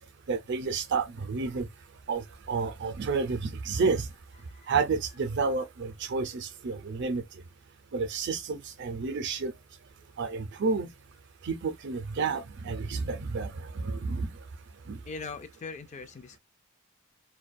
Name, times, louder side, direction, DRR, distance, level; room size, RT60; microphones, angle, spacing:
voice 1, 0.3-1.7 2.1-4.0 4.7-7.2 7.9-9.5 10.2-10.9 11.4-13.5 13.8-14.3 14.9-15.0, right 4 dB, 60° right, 0.5 m, -30 dB
voice 2, 15.1-16.4, left 4 dB, 35° left, 0.3 m, -41 dB
2.2 x 2.2 x 2.5 m
head